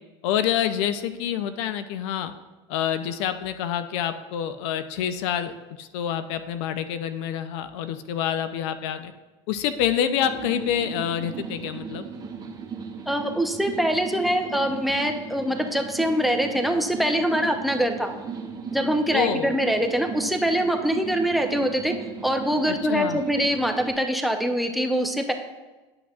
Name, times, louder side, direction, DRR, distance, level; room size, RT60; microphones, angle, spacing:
voice 1, 0.2-2.3 2.7-9.1 9.5-12.1 19.1-19.5 22.7-23.2, left 9 dB, 70° left, 10 dB, 0.5 m, -27 dB
sound 1, 10.2-23.9, right 6 dB, 25° right, 1.3 m, -37 dB
voice 2, 13.1-18.1 18.7-21.9 22.2-25.3, equal, ahead, 6 dB, 0.7 m, -24 dB
10.5 x 6.1 x 2.4 m, 1.2 s
hypercardioid pair, 95°, 15 cm